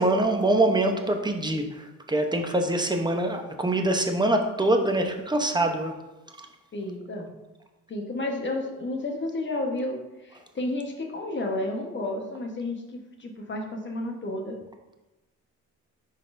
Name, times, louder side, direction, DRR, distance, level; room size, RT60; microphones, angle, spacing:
voice 1, 0.0-1.7 2.1-5.9 6.4-6.5, right 1 dB, 15° right, 4 dB, 0.8 m, -24 dB
voice 2, 6.7-7.3 7.9-14.6, left 2 dB, 40° left, 2 dB, 1.2 m, -31 dB
11.0 x 4.1 x 2.6 m, 1.0 s
cardioid pair, 90°, 30 cm